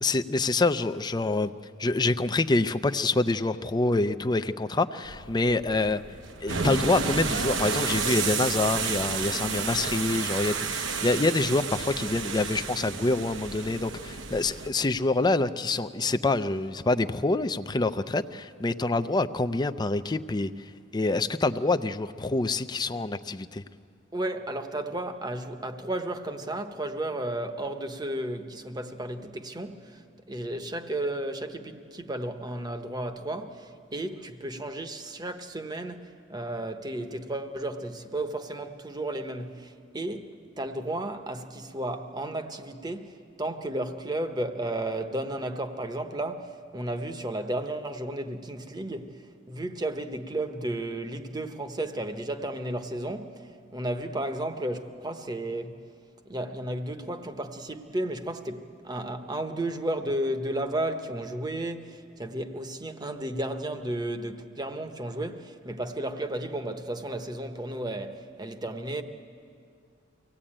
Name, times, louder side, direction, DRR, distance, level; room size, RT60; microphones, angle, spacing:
voice 1, 0.0-1.5 1.8-6.0 6.4-23.6, left 2 dB, 20° left, 0.5 m, -26 dB
sound 1, 5.0-14.7, right 5 dB, 70° right, 1.1 m, -31 dB
voice 2, 24.1-30.0 30.3-55.8 56.3-69.0, right 1 dB, 20° right, 1.0 m, -33 dB
24.0 x 17.5 x 8.8 m
head